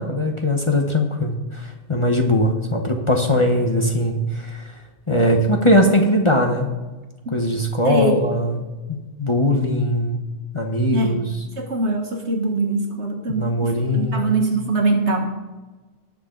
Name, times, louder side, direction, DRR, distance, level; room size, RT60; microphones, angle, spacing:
voice 1, 0.0-4.6 5.1-6.7 7.3-8.6 8.9-10.2 10.5-11.2 13.3-14.4, left 1 dB, 25° left, 2 dB, 1.1 m, -20 dB
voice 2, 7.8-8.2 10.9-11.2 11.6-15.3, right 2 dB, 65° right, 3 dB, 1.9 m, -22 dB
19.0 x 6.6 x 3.9 m, 1.2 s
omnidirectional pair, 1.2 m